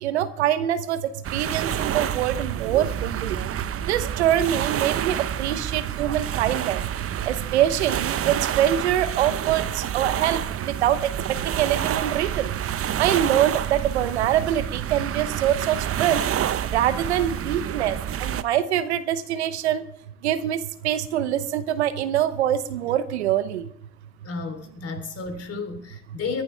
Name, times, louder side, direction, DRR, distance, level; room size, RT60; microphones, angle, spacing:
voice 1, 0.0-3.4 3.9-6.9 7.2-16.2 16.6-19.9 20.2-23.7, right 11 dB, 90° right, 13 dB, 0.9 m, -24 dB
sound 1, 1.2-18.4, right 10 dB, 45° right, 0.9 m, -28 dB
voice 2, 24.2-26.4, left 4 dB, 45° left, 7 dB, 3.4 m, -32 dB
21.5 x 11.5 x 3.4 m, 0.66 s
hypercardioid pair, 60°, 33 cm